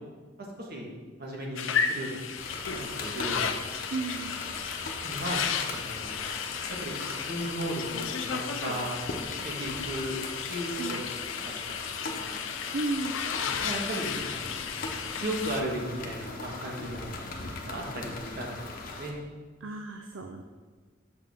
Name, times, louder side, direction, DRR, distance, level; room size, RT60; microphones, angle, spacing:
voice 1, 0.6-0.9 1.2-2.2 2.9-3.5 5.0-6.2 6.7-9.0 9.4-10.2 10.5-11.0 11.3-11.5 12.0-12.3 13.4-14.5 15.1-17.1 17.6-19.1, right 1 dB, 55° right, -2 dB, 1.5 m, -36 dB
sound 1, 1.6-15.6, left 7 dB, 75° left, 0.5 m, -34 dB
sound 2, 2.4-19.1, left 3 dB, 50° left, 0.9 m, -40 dB
voice 2, 3.9-4.4 10.8-11.1 12.7-13.2 19.6-20.4, right 3 dB, 70° right, 4 dB, 0.5 m, -34 dB
6.9 x 6.7 x 3.6 m, 1.4 s
head